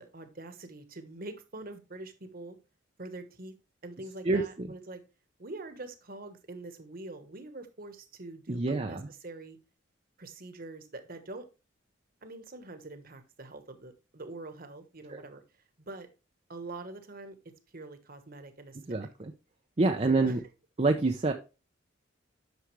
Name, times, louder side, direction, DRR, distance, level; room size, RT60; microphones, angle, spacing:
voice 1, 0.0-2.6 3.0-3.5 3.8-5.0 5.4-9.6 10.2-11.4 12.2-15.4 15.8-16.1 16.5-17.3 17.7-19.1 20.1-20.4, right 2 dB, 45° right, 8 dB, 1.3 m, -44 dB
voice 2, 4.2-4.7 8.5-9.1 15.1-15.2 18.9-19.3 19.8-20.4 20.8-21.3, right 3 dB, 30° right, 4 dB, 0.6 m, -27 dB
9.3 x 6.3 x 3.2 m, 0.30 s
head